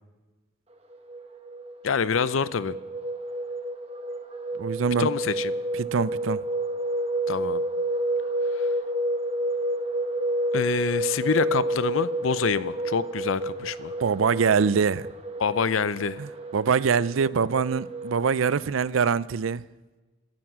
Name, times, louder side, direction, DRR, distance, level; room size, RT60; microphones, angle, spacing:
sound 1, 0.9-18.6, right 1 dB, 30° right, 1.1 m, -30 dB
voice 1, 1.8-2.8 5.0-5.5 7.3-7.6 8.6-8.7 10.5-13.9 15.4-16.2, left 6 dB, 90° left, 0.6 m, -26 dB
voice 2, 4.6-5.1 5.8-6.4 14.0-15.1 16.2-19.6, right 6 dB, 90° right, 0.5 m, -24 dB
15.5 x 10.5 x 6.2 m
head